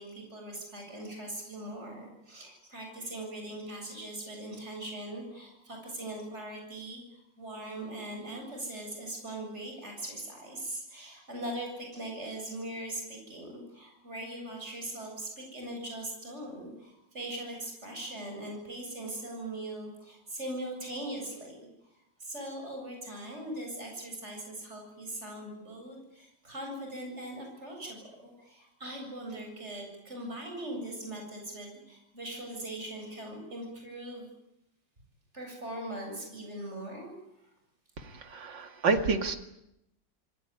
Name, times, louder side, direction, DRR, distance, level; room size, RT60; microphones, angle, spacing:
voice 1, 0.0-21.6 22.2-28.0 28.4-34.3 35.3-37.2, right 1 dB, 35° right, 1 dB, 8.1 m, -40 dB
voice 2, 38.0-39.4, right 4 dB, 85° right, 6 dB, 2.9 m, -29 dB
28.0 x 19.0 x 9.9 m, 0.84 s
omnidirectional pair, 1.9 m